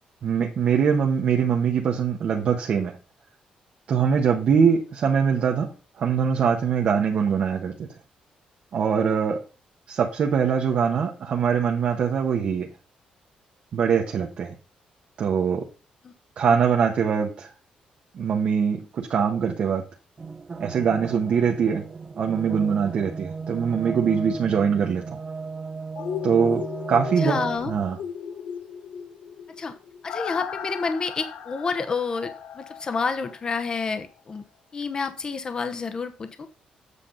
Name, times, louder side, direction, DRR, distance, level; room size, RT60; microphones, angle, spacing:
voice 1, 0.2-3.0 3.9-7.9 8.7-9.4 9.9-12.7 13.7-14.5 15.2-15.6 16.4-17.5 18.1-19.8 20.6-21.9 22.2-25.2 26.2-27.4 27.7-28.0, right 7 dB, 50° right, 1 dB, 1.2 m, -23 dB
sound 1, 20.2-27.9, right 4 dB, 25° right, 0.6 m, -36 dB
sound 2, 26.0-33.8 34.2-34.3, left 8 dB, 75° left, 1.0 m, -37 dB
voice 2, 27.2-27.7 29.6-29.7 30.0-34.4 34.7-36.3, left 4 dB, 30° left, 8 dB, 0.9 m, -29 dB
8.3 x 7.3 x 3.9 m, 0.34 s
cardioid pair, 150°, 3 cm